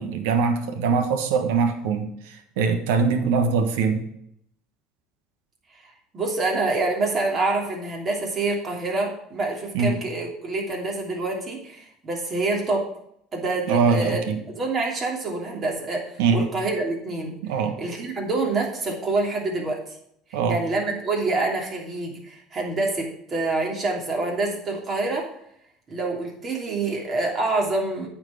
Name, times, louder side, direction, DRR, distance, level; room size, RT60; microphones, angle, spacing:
voice 1, 0.0-4.0 9.7-10.0 13.7-14.4 16.2-16.5 17.4-17.7 20.3-20.6, right 5 dB, 80° right, 7 dB, 1.3 m, -22 dB
voice 2, 6.1-12.9 13.3-14.2 14.5-17.4 17.8-19.8 20.5-25.3 25.9-28.1, right 3 dB, 35° right, 0 dB, 3.0 m, -26 dB
9.1 x 4.6 x 7.2 m, 0.72 s
supercardioid pair, 100°, 0 cm